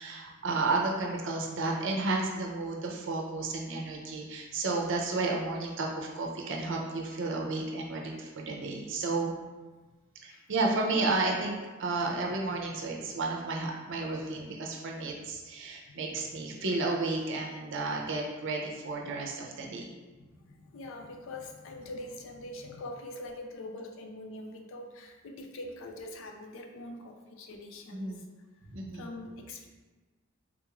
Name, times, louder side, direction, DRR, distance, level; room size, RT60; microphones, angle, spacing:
voice 1, 0.0-9.3 10.2-11.5 11.8-19.9 27.9-28.2 28.7-29.0, right 3 dB, 65° right, 0 dB, 0.6 m, -32 dB
voice 2, 10.9-11.2 15.9-16.6 20.5-28.1 28.9-29.7, left 1 dB, 65° left, 3 dB, 0.4 m, -43 dB
3.6 x 2.4 x 3.0 m, 1.2 s
head